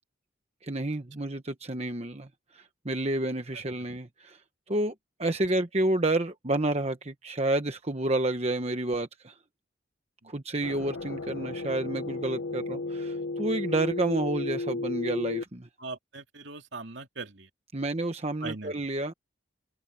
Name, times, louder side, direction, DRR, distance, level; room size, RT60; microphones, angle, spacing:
voice 1, 0.6-2.3 2.5-4.4 4.7-4.9 5.2-9.3 10.2-15.7 17.7-19.1, right 2 dB, 30° right, 1.1 m, -29 dB
sound 1, 10.6-15.4, left 2 dB, 85° left, 1.0 m, -34 dB
voice 2, 15.8-17.5 18.4-18.7, right 3 dB, 65° right, 2.6 m, -40 dB
head